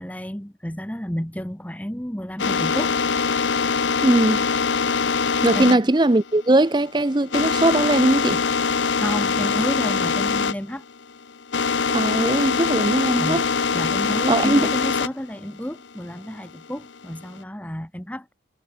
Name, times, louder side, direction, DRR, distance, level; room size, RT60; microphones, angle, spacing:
voice 1, 0.0-2.9 5.5-5.8 9.0-10.8 13.1-13.4 13.7-18.3, equal, 10° left, 1.2 m, -31 dB
sound 1, 2.4-10.6 10.8-15.1 15.6-17.4, left 5 dB, 80° left, 0.9 m, -23 dB
voice 2, 4.0-4.4 5.4-8.4 11.9-13.4 14.3-14.7, right 2 dB, 25° right, 0.6 m, -19 dB
head